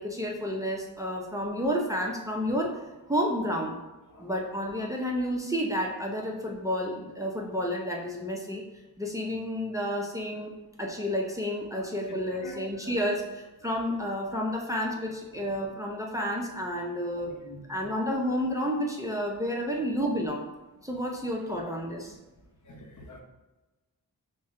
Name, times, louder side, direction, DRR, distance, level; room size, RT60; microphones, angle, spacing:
voice 1, 0.0-2.8 3.1-3.7 4.2-8.6 9.0-10.5 10.8-17.3 17.7-20.5 20.8-22.2, equal, 10° right, -1 dB, 0.5 m, -30 dB
voice 2, 12.1-12.9 17.3-17.6 22.7-23.2, left 1 dB, 55° left, 2 dB, 0.7 m, -44 dB
6.0 x 2.1 x 3.6 m, 1.1 s
wide cardioid pair, 95°, 36 cm